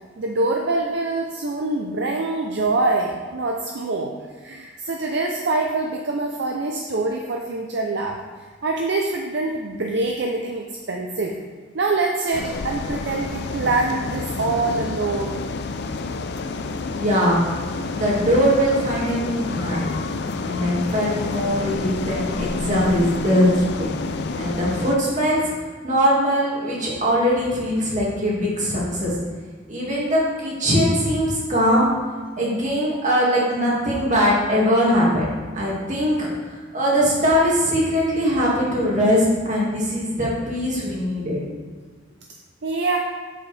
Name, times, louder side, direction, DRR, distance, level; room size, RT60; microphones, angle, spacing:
voice 1, 0.2-4.1 4.4-8.2 8.6-11.3 11.7-15.4 42.6-43.0, right 3 dB, 65° right, 1 dB, 0.6 m, -24 dB
sound 1, 12.3-25.0, left 3 dB, 60° left, 0.5 m, -29 dB
voice 2, 16.9-17.4 17.9-20.0 20.4-23.9 24.3-25.5 25.8-29.1 29.7-31.9 32.4-41.4, equal, 40° right, -4 dB, 2.2 m, -21 dB
7.9 x 7.5 x 3.4 m, 1.5 s
head